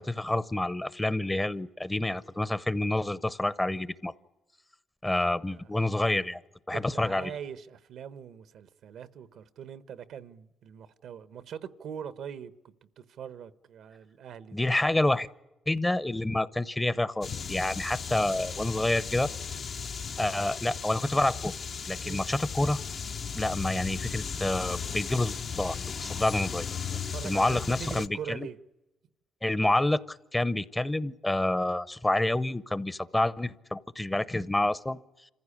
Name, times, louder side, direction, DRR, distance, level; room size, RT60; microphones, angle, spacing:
voice 1, 0.0-4.1 5.0-6.4 6.7-7.3 14.5-15.3 15.7-19.3 20.2-21.5 21.9-22.8 23.3-26.7 27.2-28.5 29.4-35.0, left 1 dB, 15° left, 0.8 m, -28 dB
voice 2, 6.7-14.9 18.4-18.9 22.0-22.3 26.9-28.6, right 8 dB, 75° right, 1.0 m, -43 dB
sound 1, 17.2-28.1, left 6 dB, 50° left, 0.8 m, -36 dB
27.0 x 15.0 x 10.0 m
cardioid pair, 90°, 0 cm